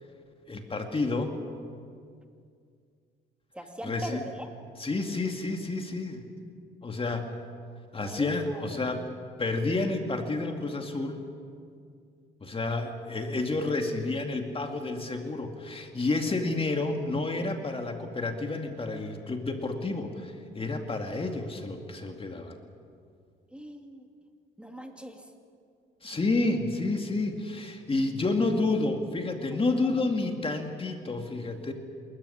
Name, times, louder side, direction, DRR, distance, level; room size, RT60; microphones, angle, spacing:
voice 1, 0.5-1.3 3.8-4.2 4.8-6.2 6.8-7.3 7.9-9.0 9.4-11.2 12.4-22.6 26.0-31.7, left 3 dB, 30° left, 4 dB, 2.3 m, -30 dB
voice 2, 3.5-4.5 8.0-8.8 23.5-24.0 24.6-25.3 29.9-30.0, right 1 dB, 5° right, 3 dB, 2.4 m, -40 dB
27.5 x 13.5 x 9.9 m, 2.3 s
cardioid pair, 90°, 20 cm